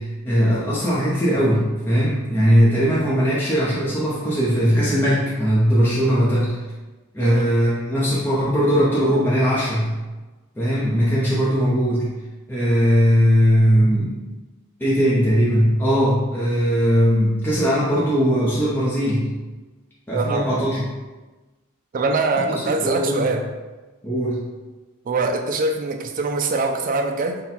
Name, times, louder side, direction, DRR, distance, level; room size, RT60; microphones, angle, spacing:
voice 1, 0.0-6.6 7.1-9.9 10.6-12.1 12.5-14.2 14.8-19.3 20.1-20.8 22.8-23.3 24.0-24.4, equal, 10° left, -9 dB, 0.7 m, -19 dB
voice 2, 7.2-7.5 20.1-20.4 21.9-23.4 25.1-27.4, right 3 dB, 40° right, 4 dB, 0.3 m, -23 dB
4.1 x 2.2 x 4.1 m, 1.2 s
head